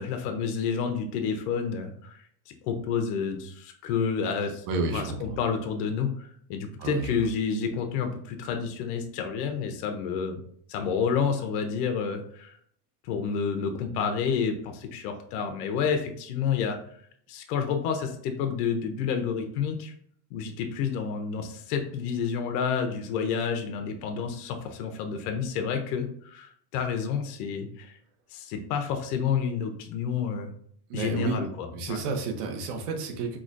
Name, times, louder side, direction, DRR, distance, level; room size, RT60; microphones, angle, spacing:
voice 1, 0.0-2.3 2.6-4.7 4.9-10.4 10.7-12.6 13.0-17.0 17.3-19.9 20.3-28.0 28.3-30.5 30.9-32.0, left 6 dB, 85° left, 6 dB, 0.7 m, -29 dB
voice 2, 4.7-5.2 6.8-7.2 30.9-31.5 31.7-33.4, right 4 dB, 80° right, 4 dB, 0.9 m, -30 dB
4.8 x 2.2 x 2.5 m, 0.64 s
cardioid pair, 170°, 46 cm